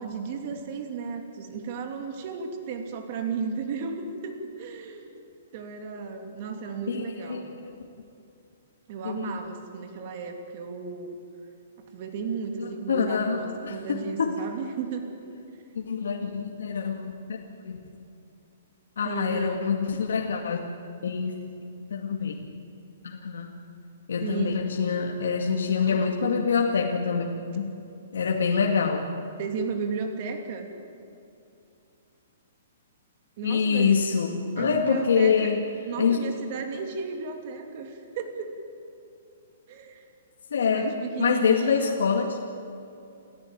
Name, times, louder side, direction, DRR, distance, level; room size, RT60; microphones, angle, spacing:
voice 1, 0.0-5.2 5.5-7.5 8.9-11.2 11.9-15.2 19.0-19.7 24.2-24.6 29.4-30.7 33.4-33.9 34.6-35.5 35.8-38.6 39.7-40.0 40.7-42.0, right 5 dB, 35° right, 5 dB, 2.8 m, -34 dB
voice 2, 6.9-7.4 9.0-9.4 12.6-13.8 14.2-14.4 15.7-17.8 19.0-20.6 21.0-22.6 23.0-23.6 24.1-27.2 27.6-27.7 28.1-29.2 33.4-35.6 36.0-36.2 40.5-42.4, left 6 dB, 90° left, 1 dB, 2.1 m, -26 dB
28.5 x 14.0 x 9.2 m, 2.7 s
hypercardioid pair, 170°, 0 cm